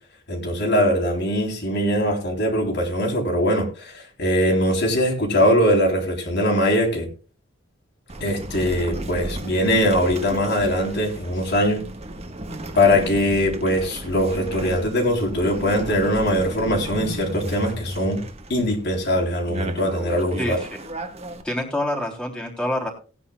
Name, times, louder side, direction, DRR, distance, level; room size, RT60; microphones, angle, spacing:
voice 1, 0.3-7.1 8.2-11.8 12.7-18.2 18.5-20.6, equal, 60° left, 0 dB, 3.9 m, -21 dB
sound 1, 8.1-21.4, right 1 dB, 30° right, 1.5 m, -34 dB
voice 2, 20.4-20.7 21.4-22.9, left 1 dB, 5° left, -1 dB, 3.5 m, -26 dB
19.0 x 9.9 x 2.4 m, 0.36 s
head